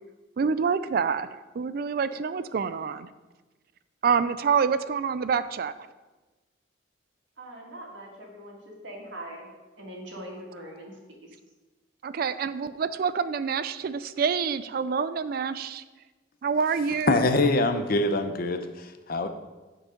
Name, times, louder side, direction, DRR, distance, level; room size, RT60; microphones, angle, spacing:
voice 1, 0.4-3.1 4.0-5.7 12.0-15.8 16.4-17.3, right 6 dB, 50° right, 14 dB, 0.3 m, -27 dB
voice 2, 7.4-11.4, right 1 dB, 70° right, -1 dB, 1.8 m, -42 dB
voice 3, 17.1-19.3, left 2 dB, 50° left, 8 dB, 0.6 m, -24 dB
8.6 x 4.7 x 5.1 m, 1.2 s
head